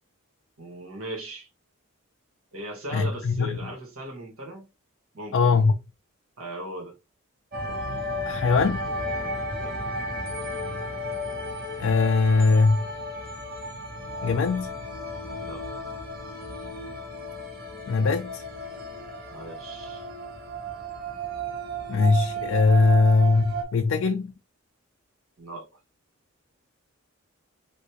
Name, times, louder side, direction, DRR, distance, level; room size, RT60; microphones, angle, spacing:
voice 1, 0.6-1.5 2.5-4.7 5.1-5.7 6.4-7.0 7.7-7.8 9.6-9.7 15.4-15.6 19.3-20.1 25.4-25.7, right 1 dB, 90° right, 1.4 m, -38 dB
voice 2, 2.9-3.7 5.3-5.7 8.3-8.8 11.8-12.9 14.2-14.7 17.9-18.4 21.9-24.3, left 4 dB, 70° left, 0.4 m, -21 dB
sound 1, 7.5-23.6, right 1 dB, 45° right, 0.8 m, -34 dB
3.5 x 2.5 x 2.9 m
head